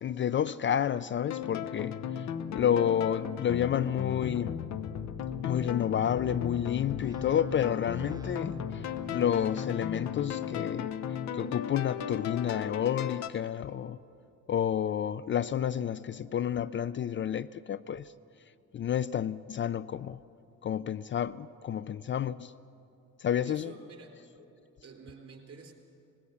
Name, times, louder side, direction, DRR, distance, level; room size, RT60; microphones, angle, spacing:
voice 1, 0.0-4.6 5.4-11.0 11.3-14.0 14.5-18.1 18.7-20.2 20.6-22.5 23.2-23.7, left 9 dB, 40° left, 0.4 m, -30 dB
sound 1, 1.3-13.3, left 8 dB, 65° left, 1.0 m, -36 dB
sound 2, 7.0-10.6, right 1 dB, 10° right, 0.6 m, -47 dB
voice 2, 23.4-24.2 24.8-25.7, right 5 dB, 50° right, 3.9 m, -49 dB
19.5 x 16.0 x 8.3 m
cardioid pair, 90°, 30 cm